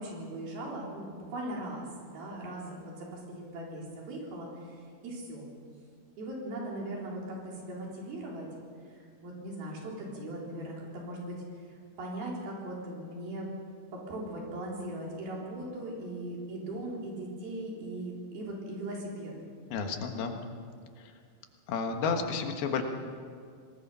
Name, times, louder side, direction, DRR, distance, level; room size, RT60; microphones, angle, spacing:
voice 1, 0.0-5.5 6.2-8.5 8.9-11.4 12.0-13.5 13.9-19.3, right 1 dB, 80° right, -3 dB, 5.8 m, -39 dB
voice 2, 19.7-20.4 21.0-21.1 21.7-22.8, left 5 dB, 85° left, 5 dB, 3.4 m, -31 dB
25.5 x 19.5 x 5.6 m, 2.2 s
omnidirectional pair, 4.3 m